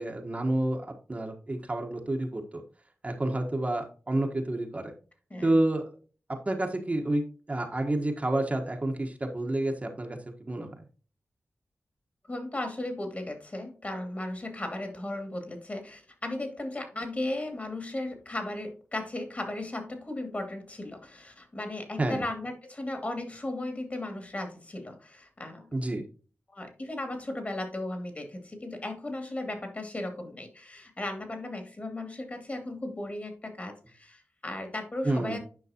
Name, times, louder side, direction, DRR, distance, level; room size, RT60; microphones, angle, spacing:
voice 1, 0.0-2.6 3.0-4.9 5.4-5.9 6.5-7.2 7.5-10.7 22.0-22.2 25.7-26.0 35.0-35.4, right 1 dB, 30° right, 2 dB, 1.3 m, -29 dB
voice 2, 12.3-25.7 26.5-35.4, left 1 dB, 35° left, 5 dB, 2.5 m, -36 dB
9.5 x 5.7 x 2.9 m, 0.38 s
wide cardioid pair, 80°, 4 cm